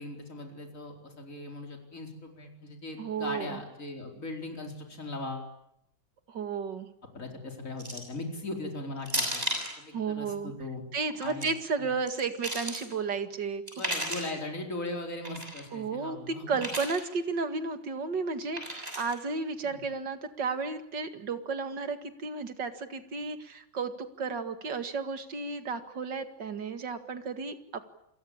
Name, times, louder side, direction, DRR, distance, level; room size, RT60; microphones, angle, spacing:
voice 1, 0.0-5.5 7.1-9.4 9.8-10.8 11.2-11.5 11.8-11.9 12.8-12.9 13.8-16.6 19.6-19.8, left 2 dB, 40° left, 3 dB, 4.8 m, -39 dB
voice 2, 3.0-3.6 6.3-6.9 9.9-10.5 10.9-13.6 15.7-27.9, right 4 dB, 65° right, 9 dB, 2.7 m, -33 dB
sound 1, 7.8-8.2 9.1-9.7 11.1-11.5 12.1-12.8 13.7-14.3 15.2-15.6 16.6-17.0 18.6-19.1, equal, 20° right, 7.2 m, -34 dB
29.0 x 22.5 x 8.8 m, 0.78 s
omnidirectional pair, 2.1 m